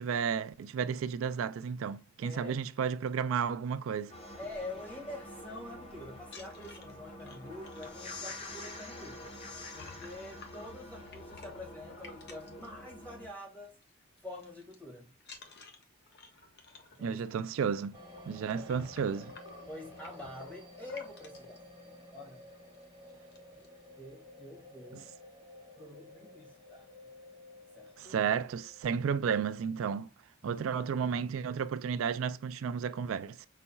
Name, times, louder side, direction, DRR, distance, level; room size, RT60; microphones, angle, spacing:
voice 1, 0.0-4.1 17.0-18.0 18.3-19.3 24.9-25.0 28.0-30.1 30.4-33.5, right 7 dB, 80° right, 0.3 m, -32 dB
voice 2, 2.2-2.6 4.4-9.3 9.7-13.8 14.2-15.1 17.0-17.2 18.5-18.8 19.7-22.4 23.6-23.7 24.0-25.1 25.8-26.9 27.7-28.2 30.4-30.8, left 2 dB, 10° left, 1.7 m, -46 dB
sound 1, 4.1-13.3, left 2 dB, 30° left, 1.0 m, -47 dB
sound 2, 6.3-13.4 13.7-13.9 14.2-14.8 15.2-21.6 22.3-22.4 22.7-22.8 23.1-23.7, left 3 dB, 55° left, 1.0 m, -54 dB
sound 3, 17.9-29.8, left 2 dB, 20° right, 1.9 m, -53 dB
5.4 x 4.1 x 2.3 m
head